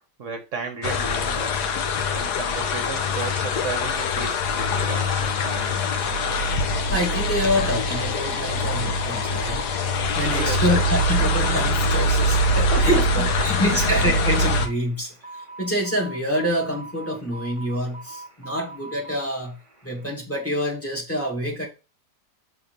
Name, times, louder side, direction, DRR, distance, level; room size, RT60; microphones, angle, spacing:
voice 1, 0.2-1.7 2.1-5.9 10.3-10.8 12.3-13.5 13.7-13.9, right 4 dB, 55° right, 1.1 m, -34 dB
sound 1, 0.8-14.7, left 2 dB, 75° left, 1.4 m, -23 dB
sound 2, 4.7-20.1, right 2 dB, 30° right, 1.8 m, -42 dB
voice 2, 6.9-9.6 10.2-15.1 15.6-19.6 19.8-21.7, equal, 10° left, 2.3 m, -26 dB
5.7 x 4.0 x 5.2 m
omnidirectional pair, 1.8 m